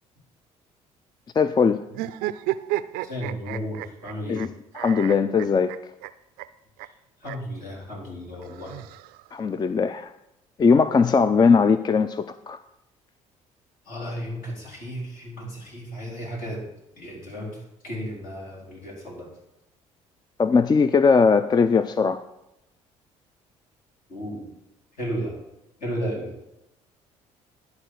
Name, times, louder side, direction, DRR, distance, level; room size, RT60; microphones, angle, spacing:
voice 1, 1.4-1.8 4.3-4.5 4.7-5.7 9.3-10.1 10.6-12.6 20.4-22.2, left 5 dB, 25° left, 12 dB, 0.4 m, -19 dB
sound 1, 1.9-4.5 4.7-6.1 6.4-6.5 6.8-6.9 7.2-7.4 8.4-9.4, right 15 dB, 70° right, 0.4 m, -32 dB
voice 2, 3.0-4.4 7.2-8.7 13.9-16.7 17.0-19.3 24.1-24.5 25.0-25.4 25.8-26.3, equal, 65° left, -3 dB, 3.9 m, -34 dB
11.5 x 4.2 x 6.4 m, 0.86 s
hypercardioid pair, 60°, 16 cm